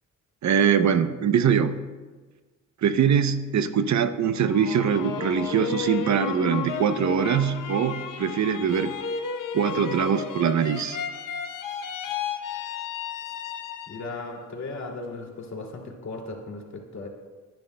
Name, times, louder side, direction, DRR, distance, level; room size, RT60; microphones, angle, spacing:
voice 1, 0.4-1.8 2.8-9.0 9.5-11.0, right 7 dB, 60° right, 11 dB, 0.7 m, -23 dB
sound 1, 4.4-14.2 14.6-15.3, left 6 dB, 85° left, 0.9 m, -33 dB
voice 2, 13.9-17.1, left 3 dB, 60° left, 0 dB, 2.5 m, -36 dB
29.5 x 10.5 x 2.2 m, 1.3 s
cardioid pair, 95°, 31 cm